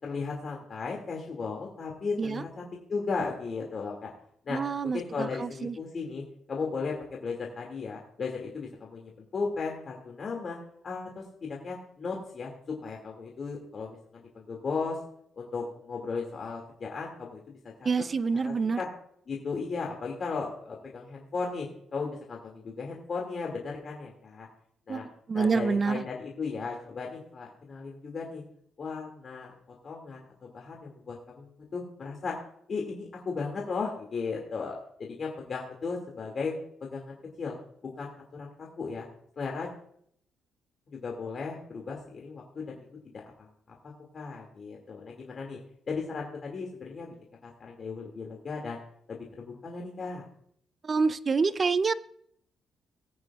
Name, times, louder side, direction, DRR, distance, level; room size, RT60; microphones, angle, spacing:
voice 1, 0.0-4.1 4.5-4.6 4.9-6.2 6.5-10.6 10.8-12.5 12.8-15.0 15.4-17.4 17.8-17.9 18.3-18.9 19.3-21.7 21.9-24.5 24.9-25.0 25.3-28.4 28.8-29.5 29.8-32.3 32.7-34.7 35.0-36.5 36.8-37.6 37.8-39.1 39.4-39.7 40.9-42.8 43.4-43.5 43.8-45.6 45.9-47.1 47.4-48.8 49.1-49.2 49.5-50.3, left 4 dB, 45° left, -1 dB, 2.3 m, -36 dB
voice 2, 4.5-5.8 17.8-18.8 24.9-26.1 50.8-51.9, right 4 dB, 35° right, 15 dB, 0.5 m, -27 dB
19.5 x 8.8 x 2.4 m, 0.66 s
cardioid pair, 90°, 0 cm